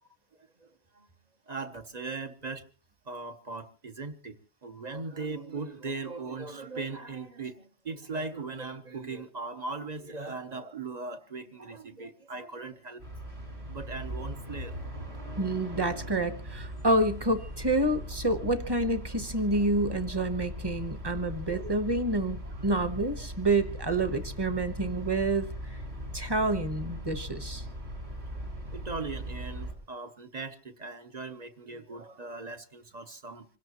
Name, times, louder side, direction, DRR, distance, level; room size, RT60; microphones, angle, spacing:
voice 1, 1.5-2.6 3.1-4.4 4.6-13.0 13.7-14.7 21.5-21.8 22.4-22.5 23.0-23.1 28.7-33.4, right 3 dB, 40° right, 0.9 m, -39 dB
sound 1, 13.0-29.7, equal, 65° right, 4.8 m, -39 dB
voice 2, 15.4-25.5 26.1-27.6, right 2 dB, 20° right, 1.1 m, -28 dB
25.5 x 17.0 x 3.0 m
omnidirectional pair, 1.2 m